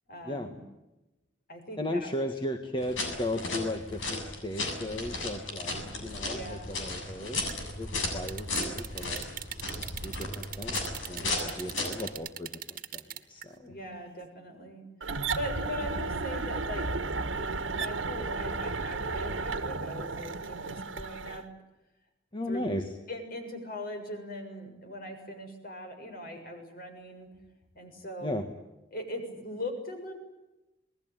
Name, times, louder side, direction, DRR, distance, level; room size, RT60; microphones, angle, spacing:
voice 1, 0.1-0.6 1.5-2.1 5.7-5.9 6.3-6.7 11.1-11.6 13.5-16.9 17.4-21.4 22.5-22.6 23.1-27.3 27.7-28.4 28.9-30.2, left 1 dB, 50° left, 5 dB, 7.1 m, -40 dB
voice 2, 1.8-7.4 7.8-9.3 9.6-12.6 12.9-13.6 22.3-22.8 28.2-28.4, left 1 dB, 25° left, 5 dB, 1.7 m, -36 dB
sound 1, 2.8-12.1, left 2 dB, 80° left, 7.5 m, -35 dB
sound 2, 7.5-7.6 8.3-13.5 13.9-14.2, right 11 dB, 45° right, 1.8 m, -39 dB
sound 3, 15.0-21.4, right 3 dB, 90° right, 1.8 m, -33 dB
27.5 x 20.5 x 9.1 m, 0.99 s
head